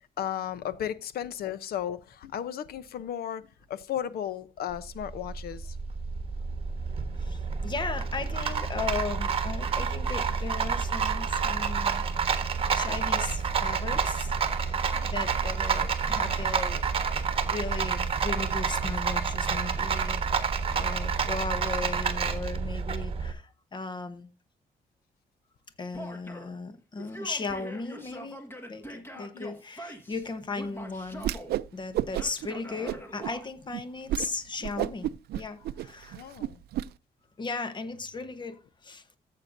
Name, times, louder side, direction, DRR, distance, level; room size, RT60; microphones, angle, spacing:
voice 1, 0.0-5.8 14.9-15.1 21.2-21.3 29.1-29.5 36.1-36.6, left 10 dB, 75° left, 0.7 m, -35 dB
Rattle, 4.7-23.3, right 6 dB, 35° right, 1.3 m, -29 dB
voice 2, 7.2-12.0 12.4-16.8 17.2-20.3 20.7-24.3 25.8-28.4 28.7-31.3 31.7-36.2 37.4-39.2, left 3 dB, 30° left, 1.1 m, -37 dB
Male speech man speaking / Yell, 25.9-26.6 27.0-30.3 30.5-31.5 32.1-33.5, equal, 15° left, 1.7 m, -43 dB
Whoosh swoosh swish, 31.2-31.7 31.9-32.5 32.8-33.3 33.7-33.8 34.1-34.3 34.6-36.8, right 13 dB, 85° right, 0.4 m, -31 dB
14.0 x 7.7 x 2.6 m
cardioid pair, 135°, 16 cm